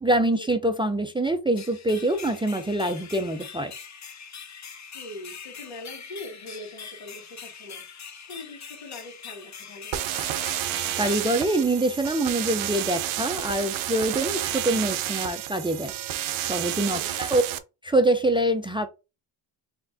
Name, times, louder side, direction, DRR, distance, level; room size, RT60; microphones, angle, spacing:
voice 1, 0.0-3.7 11.0-15.9 16.4-17.4 17.8-18.9, right 1 dB, 10° right, 0.3 m, -25 dB
sound 1, 1.6-12.3, left 6 dB, 35° left, 0.7 m, -43 dB
voice 2, 4.9-10.0 16.9-17.2, left 1 dB, 90° left, 2.3 m, -42 dB
sound 2, 9.9-17.6, right 13 dB, 90° right, 0.6 m, -30 dB
4.7 x 3.5 x 2.6 m
cardioid pair, 100°, 47 cm